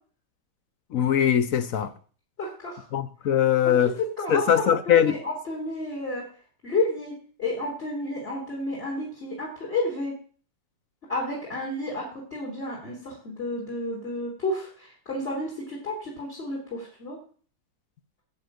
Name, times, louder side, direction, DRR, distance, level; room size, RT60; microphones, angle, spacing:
voice 1, 0.9-1.9 2.9-4.0 4.3-5.2, left 9 dB, 65° left, 0.8 m, -21 dB
voice 2, 2.4-2.9 4.2-6.2 6.6-7.1 7.4-10.1 11.1-17.2, left 2 dB, 30° left, 3.9 m, -31 dB
12.0 x 7.6 x 7.8 m
omnidirectional pair, 2.2 m